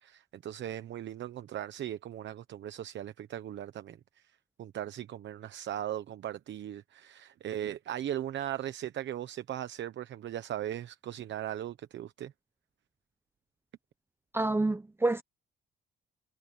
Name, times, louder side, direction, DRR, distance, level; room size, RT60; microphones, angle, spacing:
voice 1, 0.0-12.3, right 11 dB, 65° right, 1.1 m, -38 dB
voice 2, 14.3-15.2, right 2 dB, 10° right, 0.9 m, -28 dB
cardioid pair, 90°, 20 cm